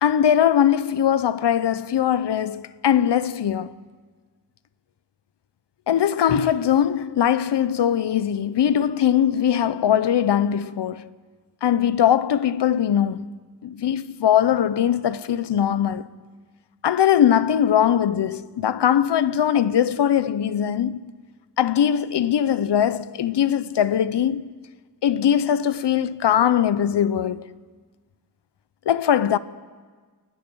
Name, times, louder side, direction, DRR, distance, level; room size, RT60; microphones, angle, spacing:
voice 1, 0.0-3.7 5.9-11.1 11.6-16.1 16.8-21.0 21.6-24.4 25.0-27.5 28.9-29.4, left 9 dB, 85° left, 0.8 m, -21 dB
29.0 x 19.5 x 5.6 m
wide cardioid pair, 145°, 41 cm